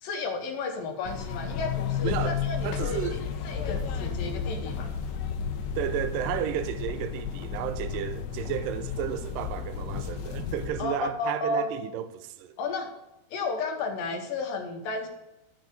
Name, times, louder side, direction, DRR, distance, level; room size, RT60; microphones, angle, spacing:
voice 1, 0.0-4.9 10.8-11.8 12.6-12.9 13.3-15.1, left 3 dB, 70° left, 2.6 m, -33 dB
sound 1, 1.1-10.7, left 7 dB, 85° left, 3.1 m, -32 dB
voice 2, 2.0-2.4 2.6-3.3 5.8-12.5, right 11 dB, 85° right, 2.0 m, -32 dB
13.5 x 5.1 x 5.3 m
omnidirectional pair, 4.6 m